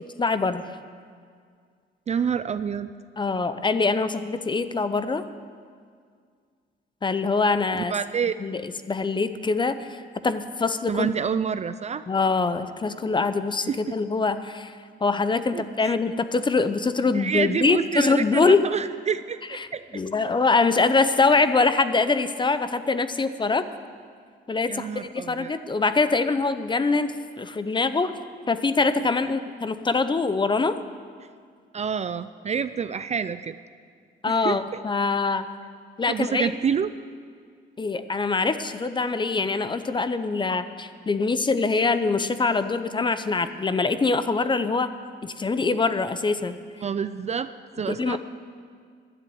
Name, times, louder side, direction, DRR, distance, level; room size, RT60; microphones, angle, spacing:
voice 1, 0.2-0.7 3.2-5.2 7.0-7.9 8.4-11.1 12.1-18.7 19.5-19.7 19.9-23.7 24.5-28.1 28.5-30.8 34.2-35.5 36.0-36.6 37.8-44.9 45.2-46.6 47.9-48.2, left 4 dB, 25° left, 12 dB, 0.6 m, -24 dB
voice 2, 2.1-2.9 7.7-8.4 10.9-12.0 13.7-13.8 15.5-15.9 17.1-20.0 24.7-25.5 31.7-33.6 34.3-34.8 36.1-36.9 46.8-48.2, right 7 dB, 35° right, 12 dB, 0.4 m, -28 dB
11.5 x 7.5 x 9.4 m, 2.1 s
cardioid pair, 90°, 20 cm